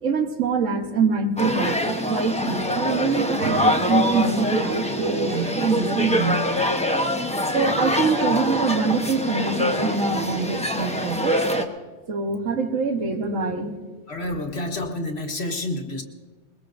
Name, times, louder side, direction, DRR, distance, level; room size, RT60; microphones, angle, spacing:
voice 1, 0.0-6.6 7.5-11.4 12.1-13.9, right 4 dB, 85° right, 5 dB, 1.6 m, -24 dB
sound 1, 1.4-11.7, left 1 dB, 5° left, 0.8 m, -24 dB
voice 2, 14.1-16.0, left 1 dB, 55° left, 3 dB, 1.6 m, -29 dB
21.5 x 21.0 x 2.6 m, 1.4 s
omnidirectional pair, 1.3 m